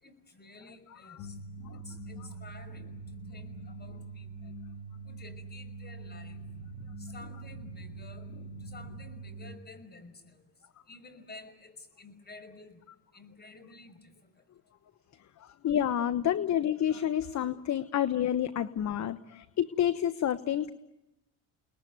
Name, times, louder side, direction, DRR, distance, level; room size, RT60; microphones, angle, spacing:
voice 1, 0.0-1.4 1.8-4.6 5.1-6.4 7.0-8.3 8.6-10.4 10.9-12.8 13.1-14.3, left 3 dB, 25° left, 10 dB, 5.7 m, -51 dB
sound 1, 1.2-9.5, right 2 dB, 75° left, 3.8 m, -44 dB
voice 2, 15.4-20.7, left 10 dB, 45° left, 12 dB, 1.1 m, -29 dB
30.0 x 20.5 x 9.3 m, 0.97 s
supercardioid pair, 80°, 37 cm